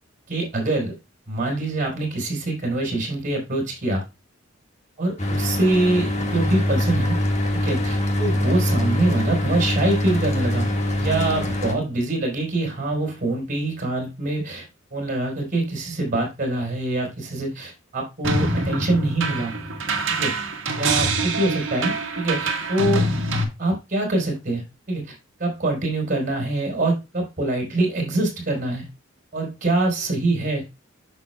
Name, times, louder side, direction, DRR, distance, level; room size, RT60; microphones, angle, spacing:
voice 1, 0.3-1.0 1.3-4.0 5.0-7.2 7.5-10.7 11.0-14.7 14.9-19.6 20.1-20.3 20.8-23.0 23.6-24.6 24.9-25.1 25.4-28.9 29.3-30.6, right 2 dB, 40° right, 1 dB, 4.3 m, -24 dB
Mechanical fan, 5.2-11.8, left 1 dB, 35° left, 1.6 m, -23 dB
sound 1, 18.2-23.4, right 2 dB, 65° right, 1.6 m, -25 dB
10.0 x 6.9 x 2.2 m, 0.25 s
head